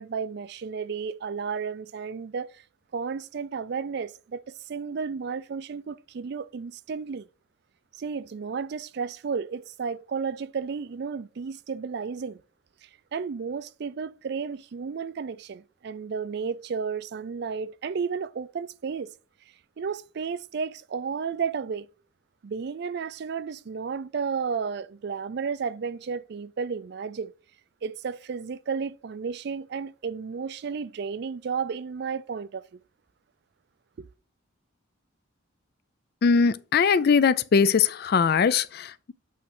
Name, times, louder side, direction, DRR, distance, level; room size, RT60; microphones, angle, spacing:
voice 1, 0.0-2.6 2.9-7.3 8.0-12.4 12.8-19.1 19.8-21.9 22.4-27.3 27.8-32.6 34.0-34.1, right 5 dB, 55° right, 0.4 m, -33 dB
voice 2, 36.2-39.1, left 5 dB, 50° left, 0.4 m, -21 dB
8.4 x 3.2 x 4.9 m
head